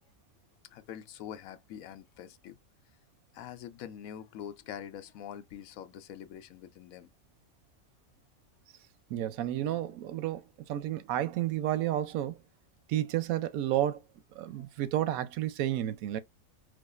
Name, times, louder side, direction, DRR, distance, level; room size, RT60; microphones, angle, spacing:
voice 1, 0.7-2.6 3.3-7.1 14.6-14.7, left 9 dB, 80° left, 1.0 m, -44 dB
voice 2, 9.1-10.4 10.7-12.4 12.9-14.0 14.4-16.2, right 12 dB, 90° right, 1.0 m, -31 dB
4.8 x 2.0 x 2.3 m
omnidirectional pair, 1.4 m